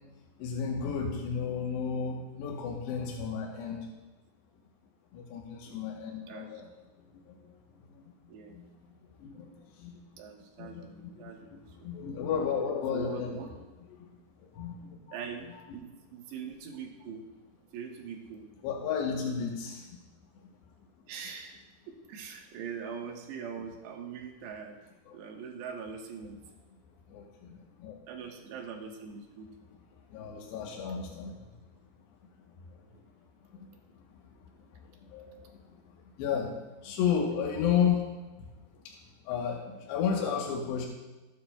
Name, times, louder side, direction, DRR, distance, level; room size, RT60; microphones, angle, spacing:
voice 1, 0.4-3.8 5.1-6.7 7.3-7.5 8.0-8.1 8.5-8.7 9.2-9.5 9.8-10.0 10.6-13.4 13.9-14.1 14.5-15.0 18.6-20.0 25.1-25.2 27.1-28.0 30.1-31.5 32.7-32.8 33.5-33.7 35.0-35.8 36.2-38.0 38.9-39.0 39.3-40.9, left 7 dB, 90° left, -1 dB, 3.2 m, -33 dB
voice 2, 10.2-11.9 12.9-13.5 15.1-17.3 17.7-18.4 21.1-21.6 21.9-24.8 25.1-26.4 28.1-29.5 36.3-36.4, right 6 dB, 90° right, 1 dB, 3.4 m, -42 dB
17.0 x 9.2 x 2.2 m, 1.1 s
omnidirectional pair, 4.8 m